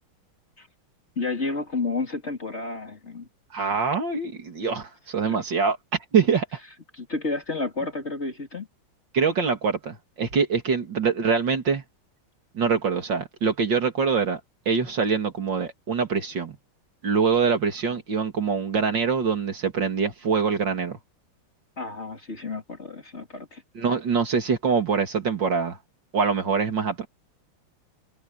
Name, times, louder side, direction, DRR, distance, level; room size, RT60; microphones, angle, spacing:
voice 1, 1.2-3.3 5.3-5.4 6.9-8.7 17.9-18.0 21.8-23.6, left 3 dB, 30° left, 3.5 m, -31 dB
voice 2, 3.5-5.8 6.1-6.4 9.1-11.8 12.5-14.4 14.7-16.6 17.0-21.0 23.7-25.8 26.1-27.1, right 5 dB, 65° right, 3.1 m, -24 dB
omnidirectional pair, 2.2 m